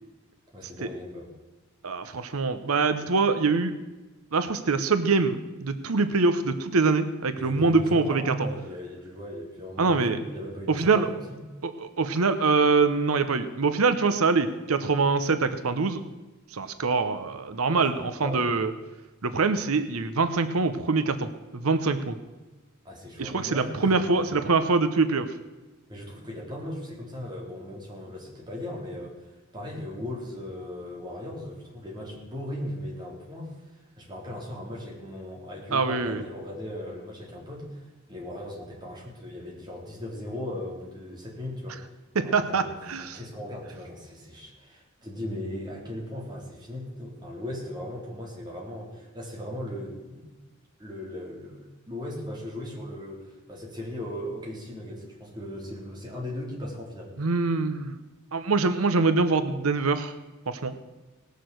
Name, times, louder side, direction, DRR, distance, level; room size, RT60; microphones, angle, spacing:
voice 1, 0.5-1.3 7.4-11.4 17.7-18.5 22.8-24.3 25.9-29.2 29.5-33.5 34.0-37.8 38.1-41.8 42.2-50.3 50.8-57.3, left 1 dB, 20° right, -3 dB, 3.9 m, -38 dB
voice 2, 1.8-3.7 4.3-8.5 9.8-10.2 10.7-11.1 11.6-16.0 16.5-18.7 19.2-22.1 23.2-25.3 35.7-36.2 42.1-43.2 57.2-57.9 58.3-60.1 60.5-60.8, right 4 dB, 85° right, 10 dB, 0.9 m, -24 dB
18.5 x 6.6 x 7.8 m, 1.2 s
head